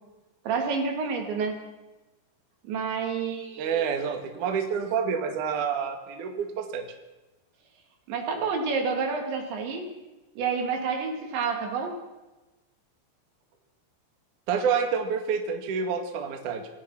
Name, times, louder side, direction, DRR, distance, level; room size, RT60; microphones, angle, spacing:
voice 1, 0.5-1.6 2.7-3.9 8.1-9.9 10.4-12.0, right 5 dB, 75° right, 3 dB, 5.3 m, -29 dB
voice 2, 3.6-6.9 14.5-16.7, right 6 dB, 55° right, 4 dB, 2.9 m, -28 dB
27.5 x 17.0 x 6.0 m, 1.1 s
omnidirectional pair, 5.2 m